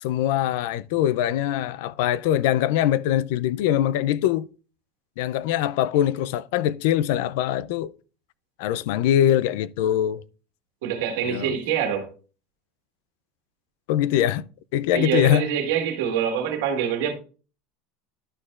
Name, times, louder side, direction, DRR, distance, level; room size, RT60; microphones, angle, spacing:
voice 1, 0.0-4.5 5.2-7.9 8.6-10.2 11.3-11.6 13.9-14.5 14.7-15.5, left 11 dB, 65° left, 0.3 m, -23 dB
voice 2, 10.8-12.1 14.9-17.1, right 8 dB, 75° right, 1.5 m, -25 dB
11.0 x 6.5 x 2.4 m
supercardioid pair, 165°, 0 cm